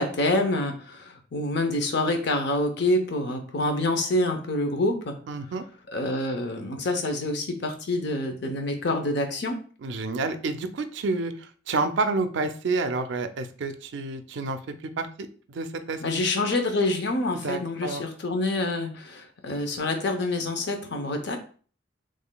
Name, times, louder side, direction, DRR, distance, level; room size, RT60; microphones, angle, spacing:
voice 1, 0.0-5.1 5.9-9.6 16.0-21.4, left 2 dB, 65° left, 5 dB, 0.7 m, -27 dB
voice 2, 5.3-5.6 9.8-16.0 17.3-18.0, right 3 dB, 70° right, 10 dB, 0.4 m, -29 dB
3.7 x 3.1 x 2.2 m, 0.42 s
head